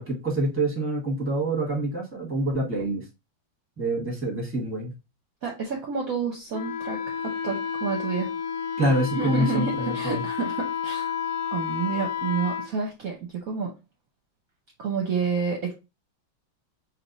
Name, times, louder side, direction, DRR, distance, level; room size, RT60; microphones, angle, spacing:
voice 1, 0.0-3.1 3.8-4.9 8.8-10.2, right 1 dB, 10° right, -1 dB, 1.2 m, -26 dB
voice 2, 5.4-8.3 9.1-11.1 11.5-13.7 14.8-15.7, right 5 dB, 60° right, 0 dB, 1.0 m, -29 dB
Wind instrument woodwind instrument, 6.5-12.7, left 8 dB, 85° left, 1.3 m, -31 dB
3.4 x 2.7 x 3.8 m, 0.26 s
omnidirectional pair, 2.0 m